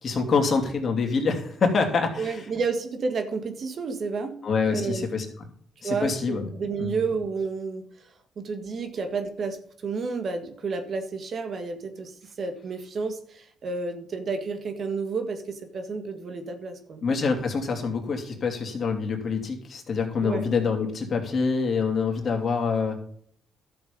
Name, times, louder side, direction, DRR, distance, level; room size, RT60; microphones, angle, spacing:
voice 1, 0.0-2.5 4.4-5.3 5.8-6.5 6.8-7.0 17.0-23.0, left 5 dB, 50° left, 2 dB, 2.8 m, -26 dB
voice 2, 2.2-4.4 4.7-5.1 5.8-7.8 8.4-9.6 9.8-12.1 12.4-17.0 20.2-20.5, right 4 dB, 50° right, 7 dB, 1.8 m, -30 dB
12.0 x 7.0 x 5.4 m, 0.62 s
cardioid pair, 90°, 0 cm